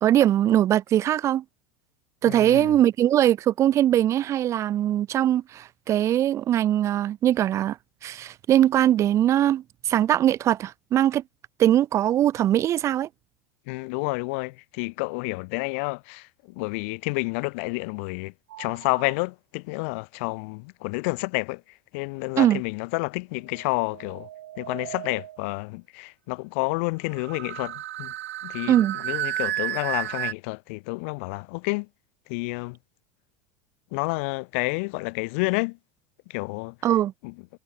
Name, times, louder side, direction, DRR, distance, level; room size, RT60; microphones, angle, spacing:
voice 1, 0.0-1.4 2.2-7.8 8.0-11.2 11.6-13.1 22.4-22.6 28.7-29.0 36.8-37.1, right 12 dB, 40° right, 2.2 m, -21 dB
voice 2, 2.3-2.8 13.7-18.3 18.6-21.6 21.9-24.3 24.6-28.1 28.4-31.9 32.3-32.8 33.9-35.8 36.3-37.5, left 30 dB, 65° left, 1.9 m, -30 dB
sound 1, 18.5-19.1 23.5-25.5 27.1-30.3, right 13 dB, 80° right, 5.6 m, -33 dB
hypercardioid pair, 90°, 7 cm